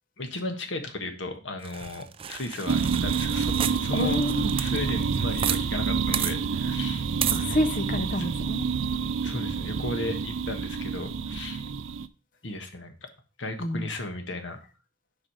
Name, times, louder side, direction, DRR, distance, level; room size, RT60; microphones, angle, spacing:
voice 1, 0.2-4.2 4.5-7.1 8.1-8.3 9.2-11.6 12.4-12.9 13.4-14.6, left 2 dB, 75° left, 1.5 m, -35 dB
sound 1, 1.6-5.6 5.9-6.0 6.1-6.3 7.2-7.4, right 9 dB, 30° right, 0.4 m, -31 dB
sound 2, 2.7-12.1, right 5 dB, 85° right, 0.5 m, -28 dB
voice 2, 3.9-4.6 7.3-8.6 13.6-13.9, left 1 dB, 45° left, 0.8 m, -28 dB
7.5 x 4.9 x 4.9 m
head